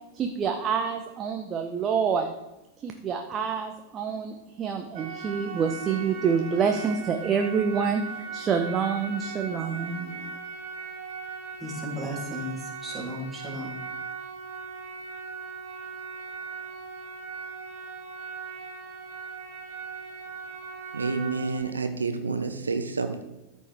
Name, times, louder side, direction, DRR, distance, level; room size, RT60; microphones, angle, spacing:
voice 1, 0.1-2.3 2.8-10.3, right 6 dB, 25° right, 5 dB, 0.9 m, -27 dB
sound 1, 5.0-21.6, right 5 dB, 50° right, 1.6 m, -39 dB
voice 2, 11.6-13.8, equal, 10° right, -4 dB, 3.1 m, -35 dB
voice 3, 20.9-23.2, right 4 dB, 75° right, 7 dB, 0.7 m, -29 dB
13.5 x 6.4 x 3.6 m, 0.97 s
figure-of-eight pair, 90°, 0 cm